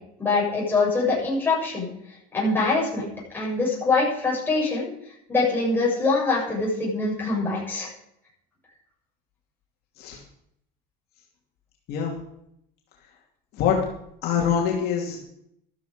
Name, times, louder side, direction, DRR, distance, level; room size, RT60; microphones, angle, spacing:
voice 1, 0.2-1.9 2.3-3.1 3.3-4.9 5.3-7.9, left 3 dB, 10° left, -6 dB, 7.8 m, -23 dB
voice 2, 14.2-15.3, left 8 dB, 55° left, -2 dB, 2.7 m, -24 dB
14.0 x 13.0 x 5.2 m, 0.75 s
cardioid pair, 150°, 20 cm